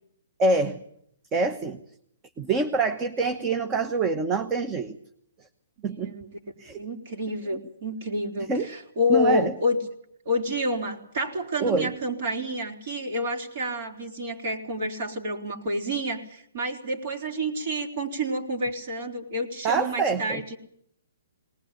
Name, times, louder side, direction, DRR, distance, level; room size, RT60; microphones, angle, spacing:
voice 1, 0.4-0.8 1.3-1.8 2.4-5.0 5.8-6.1 6.6-6.8 8.5-8.7 9.1-9.5 11.6-11.9 19.6-20.4, right 3 dB, 20° right, 9 dB, 1.1 m, -25 dB
voice 2, 5.8-6.3 6.7-9.8 10.3-20.6, left 1 dB, 55° right, 3 dB, 4.0 m, -29 dB
20.0 x 19.5 x 9.0 m, 0.70 s
hypercardioid pair, 145°, 0 cm